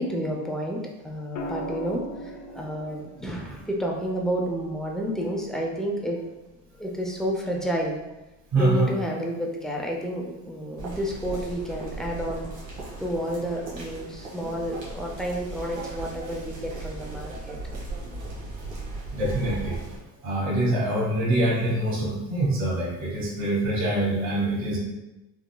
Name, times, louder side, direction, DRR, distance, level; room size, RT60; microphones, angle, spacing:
voice 1, 0.0-6.2 6.8-8.0 8.5-12.5 13.0-17.6, equal, ahead, -1 dB, 0.5 m, -30 dB
sound 1, 1.4-5.5 7.2-7.6, equal, 50° left, 0.6 m, -40 dB
voice 2, 8.5-8.9 19.1-19.8 20.2-24.8, right 1 dB, 45° right, -4 dB, 1.3 m, -24 dB
sound 2, 10.8-20.0, right 2 dB, 85° right, 1.3 m, -37 dB
3.6 x 2.8 x 2.2 m, 1.0 s
cardioid pair, 105°, 37 cm